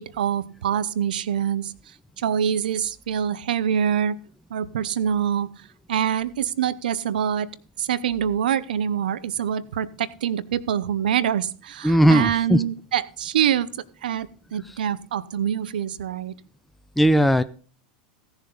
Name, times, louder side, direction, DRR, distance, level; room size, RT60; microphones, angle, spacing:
voice 1, 0.0-1.7 2.2-4.2 4.5-5.5 5.9-7.5 7.8-13.7 14.0-16.3, right 9 dB, 80° right, 18 dB, 0.7 m, -25 dB
voice 2, 11.8-12.6 17.0-17.4, equal, 5° left, 11 dB, 0.6 m, -17 dB
16.5 x 7.0 x 4.0 m, 0.39 s
hypercardioid pair, 110°, 5 cm